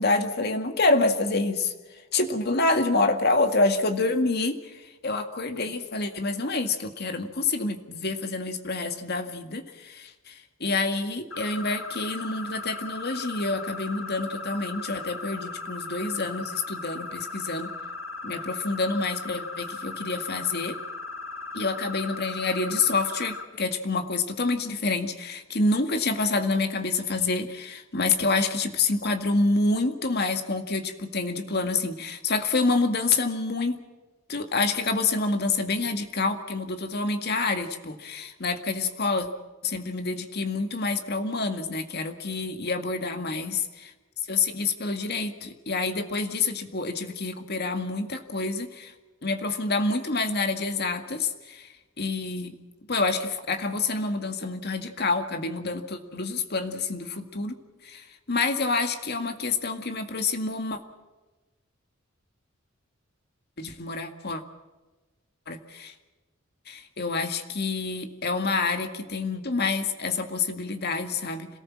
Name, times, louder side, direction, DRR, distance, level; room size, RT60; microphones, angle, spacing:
voice 1, 0.0-1.7 2.1-17.7 18.2-20.8 21.5-33.8 34.3-39.3 39.6-43.9 44.3-48.9 49.2-51.7 52.0-52.6 52.9-57.5 57.8-60.8 63.6-64.4 65.5-65.9 66.7-71.5, left 3 dB, 55° left, 6 dB, 2.0 m, -27 dB
sound 1, 11.3-23.4, left 3 dB, 90° left, 2.0 m, -37 dB
26.5 x 18.5 x 7.4 m, 1.2 s
head